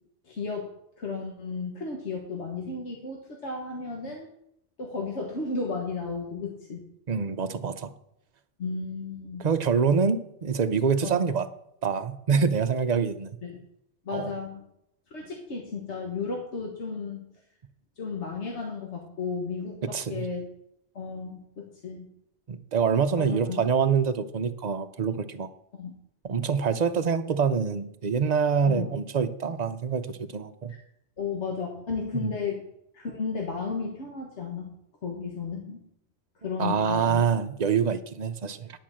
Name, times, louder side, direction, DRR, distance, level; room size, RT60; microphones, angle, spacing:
voice 1, 0.3-0.7 1.0-4.3 4.8-6.8 8.6-9.5 11.0-11.2 13.4-13.6 14.0-14.6 15.1-17.3 18.0-20.5 20.9-22.1 23.2-23.6 25.8-25.9 28.6-28.9 31.2-32.7 32.9-34.7 35.0-35.8 36.4-37.3, left 4 dB, 80° left, 1 dB, 1.7 m, -34 dB
voice 2, 7.1-7.9 9.4-11.5 11.8-13.4 14.1-14.3 19.8-20.3 22.5-25.5 26.2-30.7 32.1-32.4 36.6-38.7, right 6 dB, 45° right, 10 dB, 0.7 m, -26 dB
10.5 x 5.5 x 7.5 m, 0.78 s
omnidirectional pair, 1.1 m